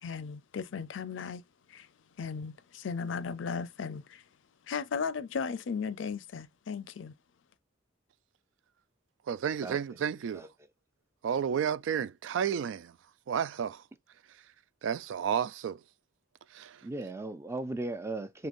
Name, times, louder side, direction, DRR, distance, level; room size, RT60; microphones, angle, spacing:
voice 1, 0.0-1.4 1.7-1.9 2.2-4.2 4.7-7.1, left 5 dB, 85° left, 0.4 m, -36 dB
voice 2, 9.3-10.5 11.2-12.9 13.3-13.8 14.8-15.8 16.5-16.8, right 8 dB, 90° right, 0.3 m, -31 dB
voice 3, 16.8-18.5, right 2 dB, 15° right, 0.4 m, -36 dB
5.2 x 2.8 x 2.4 m
head